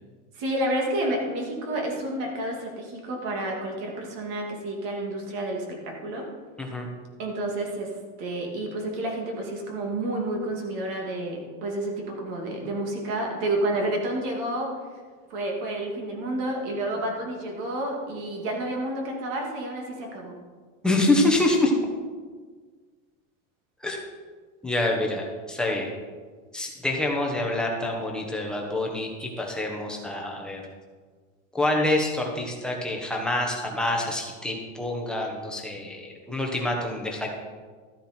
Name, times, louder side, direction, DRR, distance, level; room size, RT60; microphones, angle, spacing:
voice 1, 0.3-6.3 7.2-14.7 15.3-20.4, right 1 dB, 45° right, 1 dB, 2.6 m, -30 dB
voice 2, 20.8-21.7 23.8-24.0 24.6-25.9 26.5-30.6 31.5-37.3, left 2 dB, ahead, -1 dB, 1.1 m, -26 dB
13.5 x 9.2 x 4.4 m, 1.5 s
supercardioid pair, 170°, 39 cm